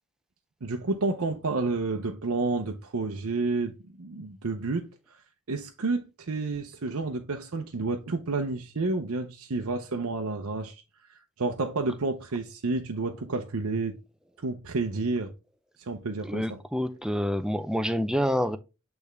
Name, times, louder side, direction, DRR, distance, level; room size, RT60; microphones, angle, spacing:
voice 1, 0.6-4.9 5.5-10.8 11.1-14.0 14.4-15.3 15.8-16.6, right 3 dB, 70° right, 0.7 m, -30 dB
voice 2, 16.2-18.6, equal, 5° right, 0.4 m, -27 dB
8.4 x 3.5 x 3.3 m
head